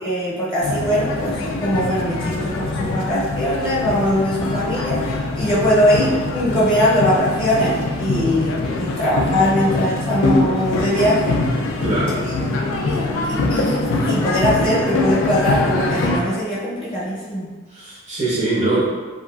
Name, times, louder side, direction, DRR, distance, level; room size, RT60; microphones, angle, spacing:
voice 1, 0.0-11.4 12.4-17.5, equal, 25° left, -8 dB, 0.7 m, -21 dB
sound 1, 0.6-16.2, left 2 dB, 75° left, 0.3 m, -23 dB
voice 2, 11.8-12.2 17.7-18.8, right 2 dB, 35° right, -6 dB, 0.5 m, -22 dB
2.7 x 2.4 x 2.2 m, 1.3 s
head